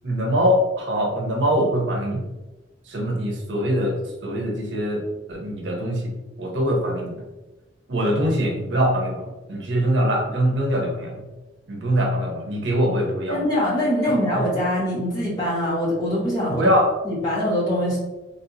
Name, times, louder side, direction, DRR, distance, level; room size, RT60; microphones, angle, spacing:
voice 1, 0.0-2.3 2.9-6.1 6.4-7.2 7.9-11.3 11.7-13.4 14.0-14.4 16.5-16.9, equal, 75° right, 0 dB, 0.7 m, -23 dB
voice 2, 13.3-16.7 17.0-18.0, equal, 20° left, -8 dB, 1.3 m, -23 dB
3.3 x 2.7 x 2.6 m, 1.1 s
head